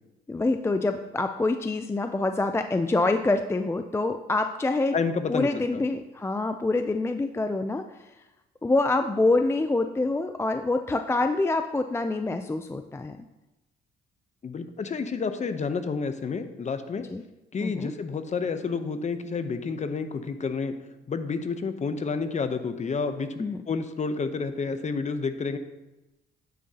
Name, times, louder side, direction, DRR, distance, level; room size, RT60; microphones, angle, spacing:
voice 1, 0.3-5.0 5.3-8.1 8.6-13.2 17.1-17.2 17.6-17.9 23.4-23.6, left 2 dB, 15° left, 8 dB, 0.4 m, -26 dB
voice 2, 4.9-5.8 14.4-17.0 17.5-20.7 21.1-25.6, left 5 dB, 35° left, 9 dB, 0.8 m, -30 dB
9.4 x 7.8 x 2.9 m, 1.0 s
cardioid pair, 90°, 20 cm